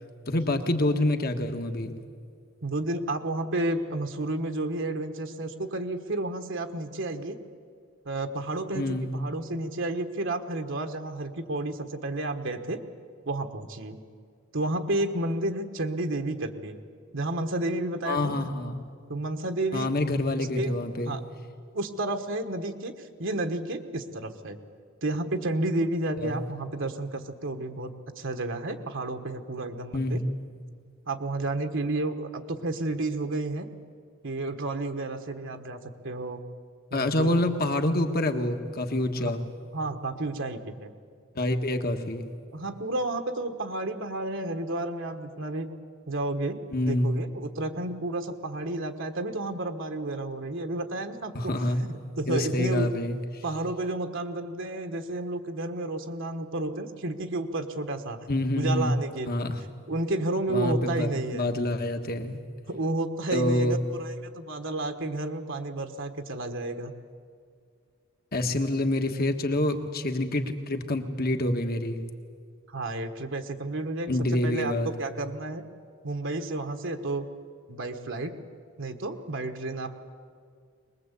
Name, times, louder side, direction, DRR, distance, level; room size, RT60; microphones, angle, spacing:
voice 1, 0.3-1.9 8.7-9.1 18.1-18.9 19.7-21.2 26.2-26.4 29.9-30.2 36.9-39.4 41.4-42.3 46.7-47.2 51.4-51.9 52.3-53.2 58.3-58.9 59.3-59.6 60.5-62.4 63.3-63.8 68.3-72.0 74.1-74.9, left 1 dB, 45° left, 6 dB, 1.6 m, -27 dB
voice 2, 2.6-7.4 8.0-12.8 13.2-14.0 14.5-16.8 17.1-18.5 19.1-20.0 20.5-20.7 21.1-21.2 21.7-24.6 25.0-30.2 31.1-33.7 34.2-35.8 36.0-36.4 36.9-37.4 39.2-39.3 39.7-40.9 42.5-45.7 46.1-52.9 53.4-58.3 58.6-59.4 59.9-61.5 62.7-66.9 72.7-75.6 76.0-77.3 77.7-78.4 78.8-79.9, right 2 dB, 60° right, 6 dB, 1.4 m, -31 dB
23.0 x 21.0 x 8.3 m, 2.1 s
head